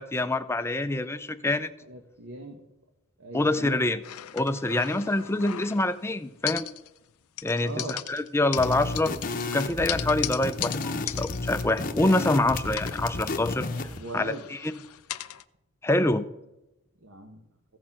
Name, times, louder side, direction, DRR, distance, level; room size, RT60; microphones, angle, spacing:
voice 1, 0.0-1.7 3.3-4.0 4.3-6.7 7.4-9.1 9.4-13.7 14.1-14.8 15.8-16.2, left 2 dB, 10° left, 11 dB, 0.5 m, -26 dB
voice 2, 1.8-2.6 3.2-3.9 7.6-8.0 13.9-14.5 17.0-17.4, right 2 dB, 60° right, 3 dB, 1.1 m, -39 dB
sound 1, 4.0-6.1 6.5-7.1 7.4-12.4 12.7-15.4, left 13 dB, 90° left, 0.5 m, -38 dB
sound 2, 8.6-14.0, left 3 dB, 40° left, 0.8 m, -32 dB
15.0 x 6.4 x 5.9 m, 0.91 s
head